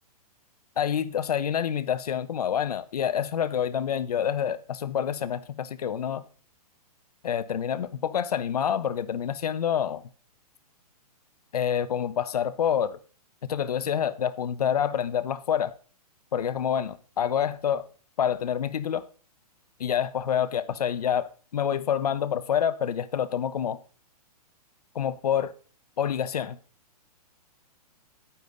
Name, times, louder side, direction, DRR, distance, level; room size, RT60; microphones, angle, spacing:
voice 1, 0.8-6.2 7.2-10.0 11.5-13.0 13.4-15.7 16.3-17.8 18.2-19.0 19.8-23.8 24.9-25.5 26.0-26.6, left 8 dB, 75° left, 1.1 m, -27 dB
10.5 x 9.1 x 3.9 m
hypercardioid pair, 180°, 20 cm